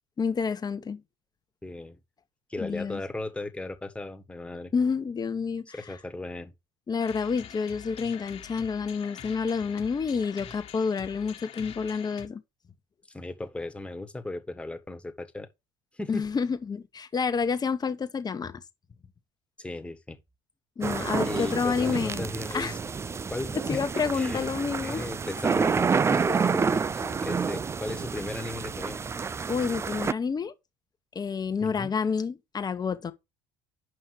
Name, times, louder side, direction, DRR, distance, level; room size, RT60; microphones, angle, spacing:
voice 1, 0.2-1.0 2.6-3.0 4.7-5.8 6.9-12.4 16.1-18.6 20.8-22.3 22.5-22.7 23.7-25.1 26.3-26.5 27.0-27.1 29.5-30.5 31.1-33.1, left 5 dB, 30° left, 1.2 m, -29 dB
voice 2, 1.6-2.0 2.5-4.7 5.7-6.5 13.1-15.5 15.9-16.2 19.6-20.2 21.3-22.8 23.3-24.5 24.8-29.0 31.6-31.9, left 2 dB, 10° left, 1.6 m, -36 dB
sound 1, 7.0-12.3, left 9 dB, 45° left, 1.6 m, -45 dB
sound 2, 20.8-30.1, right 5 dB, 20° right, 0.4 m, -29 dB
7.6 x 5.5 x 4.8 m
supercardioid pair, 85°, 14 cm